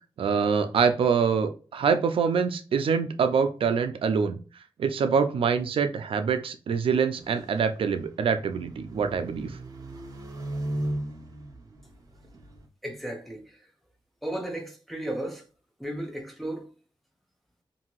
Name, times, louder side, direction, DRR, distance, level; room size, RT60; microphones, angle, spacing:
voice 1, 0.2-4.4 4.8-9.5, right 6 dB, 85° right, 0.4 m, -25 dB
sound 1, 7.2-12.7, right 1 dB, 45° right, 0.6 m, -37 dB
voice 2, 12.8-13.4 14.2-15.4 15.8-16.6, right 1 dB, ahead, 0.6 m, -34 dB
2.8 x 2.6 x 2.9 m
wide cardioid pair, 125°, 9 cm